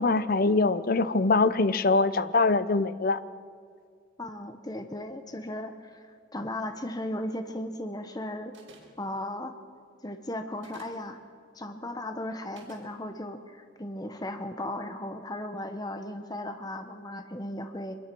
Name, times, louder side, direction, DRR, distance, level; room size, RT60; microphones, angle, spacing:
voice 1, 0.0-3.2, left 3 dB, 50° left, 14 dB, 0.7 m, -23 dB
voice 2, 4.2-8.5 9.0-9.6 10.0-11.2 11.5-18.0, left 1 dB, 20° left, 7 dB, 1.1 m, -36 dB
sound 1, 8.5-9.0 10.5-11.0 12.5-12.9, right 3 dB, 75° right, 5.7 m, -52 dB
24.5 x 21.5 x 6.2 m, 2.2 s
head